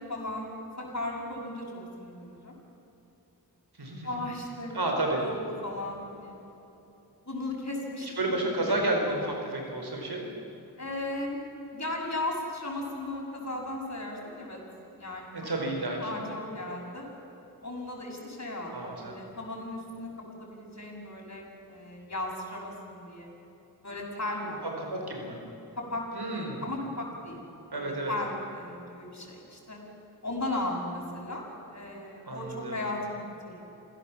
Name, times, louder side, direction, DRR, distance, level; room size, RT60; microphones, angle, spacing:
voice 1, 0.1-0.5 0.8-1.7 2.0-2.5 4.0-6.4 6.8-6.9 7.3-8.4 8.7-8.8 9.1-9.3 10.8-11.4 11.7-14.6 15.0-15.3 16.0-17.1 17.6-20.1 20.4-23.3 23.8-24.6 25.8-26.0 26.3-27.4 27.7-29.8 30.2-31.4 31.7-33.6, left 1 dB, 45° left, -2 dB, 6.8 m, -36 dB
voice 2, 3.8-4.2 4.7-5.2 8.0-10.3 15.3-16.0 18.7-19.2 24.8-25.4 26.1-26.6 27.7-28.1 32.3-32.8, right 2 dB, 80° right, 1 dB, 4.8 m, -31 dB
26.0 x 16.5 x 7.4 m, 3.0 s
wide cardioid pair, 55°, 38 cm